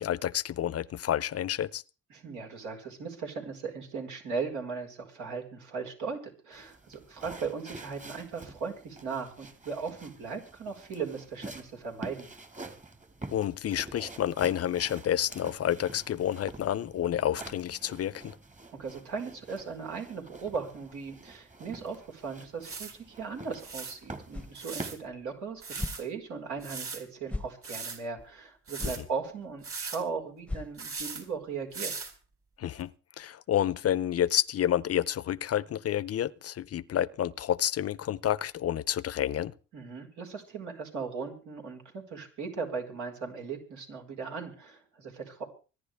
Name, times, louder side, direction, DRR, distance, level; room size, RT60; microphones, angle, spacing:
voice 1, 0.0-1.8 13.3-18.4 28.8-28.9 32.6-32.9 33.2-39.5, left 11 dB, 50° left, 0.6 m, -29 dB
voice 2, 2.1-6.2 6.4-12.3 18.7-31.9 39.7-45.4, right 5 dB, 75° right, 4.8 m, -38 dB
sound 1, 6.5-25.0, right 2 dB, 25° right, 2.1 m, -47 dB
sound 2, 21.9-22.0 22.6-22.9 23.6-23.9 24.5-24.9 25.6-26.0 26.6-27.0 27.6-28.0 28.7-29.0 29.6-30.0 30.8-31.2 31.7-32.1 32.8-32.9, right 4 dB, 45° right, 4.9 m, -38 dB
sound 3, 24.3-24.6 25.0-25.1 25.7-26.0 26.6-26.7 27.3-27.6 28.2-28.3 28.8-29.0 29.4-29.5 29.8-29.9 30.5-31.1, left 2 dB, 5° left, 0.9 m, -37 dB
25.5 x 10.5 x 3.5 m
cardioid pair, 90°, 30 cm